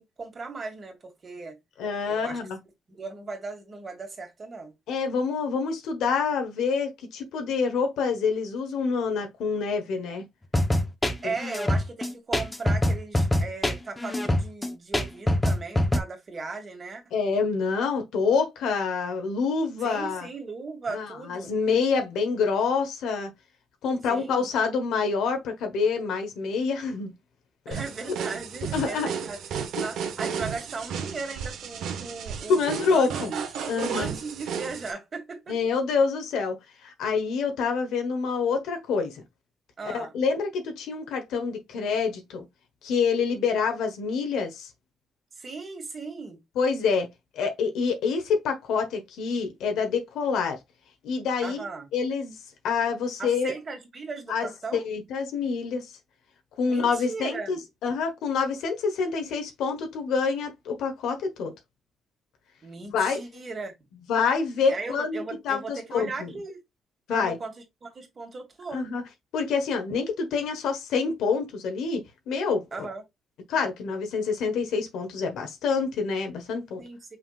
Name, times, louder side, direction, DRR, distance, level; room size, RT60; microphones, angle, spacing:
voice 1, 0.0-1.6 2.1-2.4 2.9-4.7 11.0-17.0 19.8-21.5 24.1-24.5 27.7-29.4 29.8-35.5 39.8-40.1 45.4-46.4 51.4-51.9 53.2-54.8 56.7-57.6 62.6-63.7 64.7-66.6 67.1-67.5 67.8-68.8 72.7-73.0 76.8-77.2, right 4 dB, 40° right, 2.0 m, -37 dB
voice 2, 1.8-2.6 4.9-10.2 11.2-11.3 17.1-20.3 20.9-23.3 23.8-27.1 27.6-27.8 28.7-29.1 32.5-33.3 33.7-34.2 35.5-36.6 36.8-39.2 39.8-42.4 42.8-44.7 46.5-47.1 47.3-50.6 51.0-51.6 51.9-52.4 52.6-53.5 54.3-55.9 56.6-61.5 62.9-63.2 64.1-66.3 67.1-67.4 68.7-69.0 69.3-72.9 73.5-76.8, left 5 dB, 85° left, 1.4 m, -27 dB
sound 1, 10.5-16.0, left 1 dB, 15° left, 0.9 m, -24 dB
sound 2, 27.7-34.9, right 7 dB, 80° right, 1.1 m, -33 dB
5.7 x 3.6 x 2.4 m
cardioid pair, 90°, 0 cm